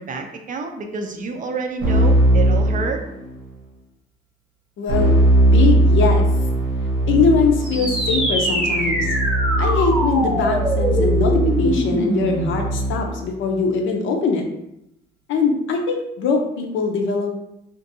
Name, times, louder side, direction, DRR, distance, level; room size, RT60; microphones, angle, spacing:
voice 1, 0.0-3.0, right 4 dB, 40° right, 4 dB, 0.4 m, -28 dB
Keyboard (musical), 1.8-3.5 4.9-13.3, right 1 dB, 85° right, 1.0 m, -19 dB
voice 2, 4.8-5.1 5.5-6.2 7.1-9.1 9.6-14.4 15.3-17.4, left 4 dB, 75° left, 2 dB, 0.6 m, -21 dB
sound 1, 7.6-12.6, right 1 dB, 5° right, 0.7 m, -23 dB
2.6 x 2.5 x 2.6 m, 0.82 s
cardioid pair, 90°, 20 cm